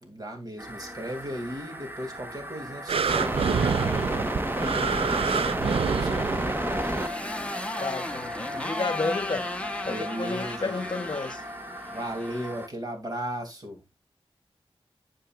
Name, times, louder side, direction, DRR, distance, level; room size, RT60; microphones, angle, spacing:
voice 1, 0.0-3.9 4.4-7.0 9.8-11.0 11.9-13.8, equal, 40° right, 2.7 m, -37 dB
sound 1, 0.6-12.7, right 1 dB, 20° right, 1.1 m, -33 dB
sound 2, 2.9-6.8 7.4-7.5, right 6 dB, 75° right, 0.4 m, -27 dB
Motorcycle, 6.1-12.5, left 1 dB, 10° left, 0.9 m, -37 dB
voice 2, 7.8-9.5 9.9-11.4, left 3 dB, 50° left, 1.0 m, -31 dB
9.9 x 7.0 x 2.4 m
wide cardioid pair, 95°, 10 cm